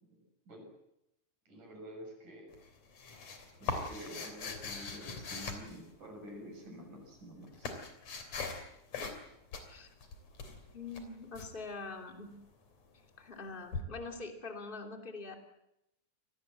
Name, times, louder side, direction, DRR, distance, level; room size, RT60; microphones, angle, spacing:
voice 1, 1.5-2.5 3.6-7.8, equal, 85° right, 3 dB, 8.1 m, -48 dB
sound 1, 2.5-6.4 7.1-8.7 8.9-9.3 9.5-11.5 13.7-13.8, left 4 dB, 60° left, 4.3 m, -41 dB
voice 2, 10.7-12.3 13.2-15.4, left 3 dB, 15° left, 3 dB, 2.7 m, -44 dB
27.5 x 19.5 x 7.5 m, 0.85 s
omnidirectional pair, 3.5 m